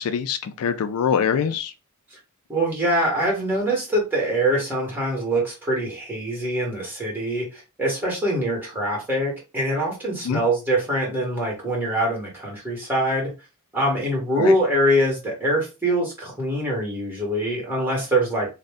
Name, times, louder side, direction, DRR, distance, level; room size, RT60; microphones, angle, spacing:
voice 1, 0.0-1.7 10.2-10.4 14.4-14.5, left 7 dB, 80° left, 0.4 m, -24 dB
voice 2, 2.5-13.3 13.7-18.5, right 1 dB, 10° right, 1.3 m, -24 dB
2.6 x 2.1 x 3.4 m
head